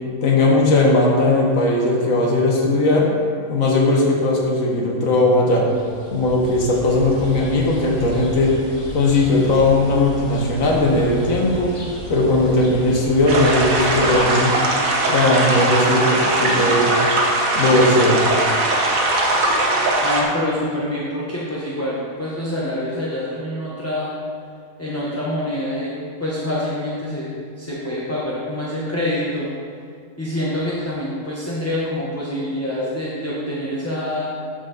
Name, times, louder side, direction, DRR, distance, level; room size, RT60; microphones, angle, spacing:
voice 1, 0.2-3.1 3.5-5.7 6.1-8.5 8.9-11.8 12.1-14.5 15.1-16.9 17.5-18.2, left 2 dB, 70° left, -1 dB, 1.7 m, -18 dB
sound 1, 5.6-14.2, right 1 dB, 25° left, 1.7 m, -35 dB
sound 2, 13.3-20.2, right 2 dB, 80° right, 1.5 m, -20 dB
voice 2, 20.0-24.1 24.8-29.5 30.2-34.3, left 1 dB, 10° left, -7 dB, 0.9 m, -26 dB
12.5 x 4.9 x 3.9 m, 2.2 s
omnidirectional pair, 1.4 m